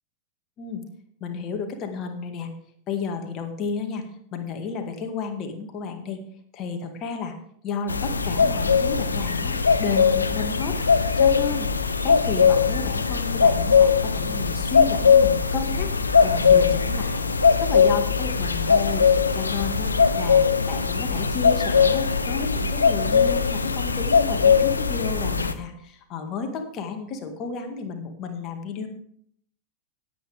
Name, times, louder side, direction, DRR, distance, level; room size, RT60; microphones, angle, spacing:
voice 1, 1.2-2.5 2.9-4.0 4.3-6.2 6.5-7.3 7.6-9.5 9.8-10.8 11.2-11.7 12.0-15.9 16.2-17.2 17.6-19.1 19.3-28.9, left 5 dB, 35° left, 5 dB, 2.0 m, -32 dB
sound 1, 7.9-25.5, left 6 dB, 75° left, 0.8 m, -20 dB
17.5 x 8.5 x 3.5 m, 0.66 s
figure-of-eight pair, 90°, 0 cm